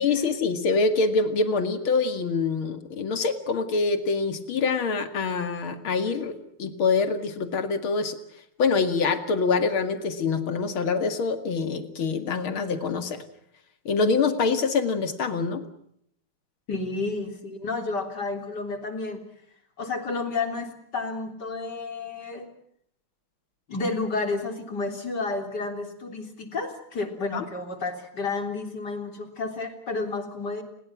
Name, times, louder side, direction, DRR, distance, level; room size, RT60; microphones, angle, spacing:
voice 1, 0.0-8.2 8.6-13.2 13.9-15.6 27.3-27.4, left 4 dB, 75° left, 9 dB, 3.0 m, -25 dB
voice 2, 16.7-19.2 19.8-22.5 23.7-30.6, left 3 dB, 50° left, 6 dB, 4.1 m, -31 dB
30.0 x 21.5 x 6.1 m, 0.70 s
omnidirectional pair, 2.3 m